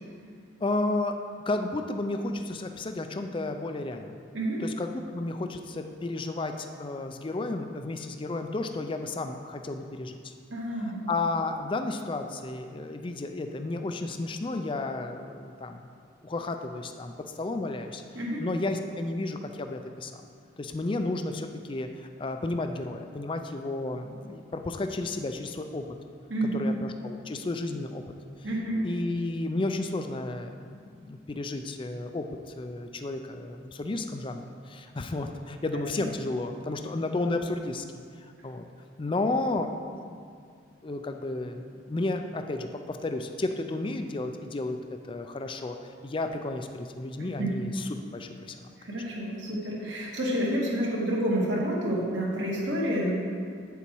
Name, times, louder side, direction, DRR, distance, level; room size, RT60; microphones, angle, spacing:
voice 1, 0.6-1.2 1.5-4.1 4.6-10.3 10.8-15.8 16.2-18.0 18.4-20.2 20.6-25.9 26.4-28.0 28.8-32.3 32.6-37.8 38.4-38.7 39.0-40.2 40.8-44.8 45.1-45.8 46.0-48.7, left 2 dB, 25° left, 6 dB, 0.4 m, -32 dB
voice 2, 10.5-11.0 18.2-18.4 26.3-26.7 28.4-28.8 47.4-47.5 48.8-53.1, equal, 65° right, -4 dB, 1.9 m, -29 dB
8.5 x 7.0 x 4.6 m, 2.2 s
head